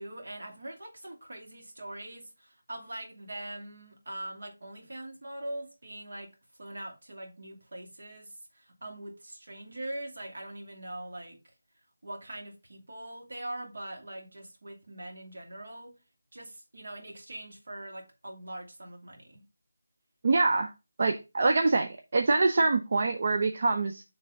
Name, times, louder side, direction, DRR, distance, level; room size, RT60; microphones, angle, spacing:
voice 1, 0.0-6.3 6.6-11.4 12.0-15.9 16.3-19.4, right 1 dB, 55° right, 2.1 m, -42 dB
voice 2, 20.2-20.7 21.0-24.0, right 3 dB, 35° right, 0.4 m, -25 dB
5.8 x 3.3 x 5.1 m
figure-of-eight pair, 180°, 0 cm